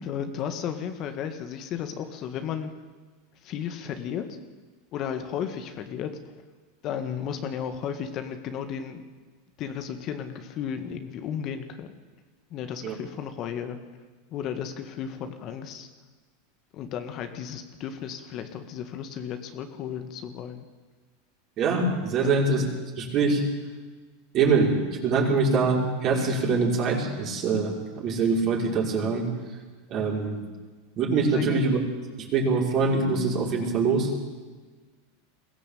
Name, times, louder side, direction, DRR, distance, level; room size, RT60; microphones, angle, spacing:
voice 1, 0.0-2.7 3.4-4.3 4.9-6.2 6.8-9.0 9.6-11.9 12.5-13.8 14.3-15.9 16.7-20.6 22.2-22.4 31.3-31.7, left 8 dB, 45° left, 7 dB, 1.9 m, -34 dB
voice 2, 21.6-22.6 23.0-23.4 24.3-29.3 29.9-30.4 31.0-31.8 32.2-34.1, right 4 dB, 45° right, -1 dB, 5.7 m, -24 dB
22.0 x 16.0 x 8.6 m, 1.4 s
hypercardioid pair, 100°, 0 cm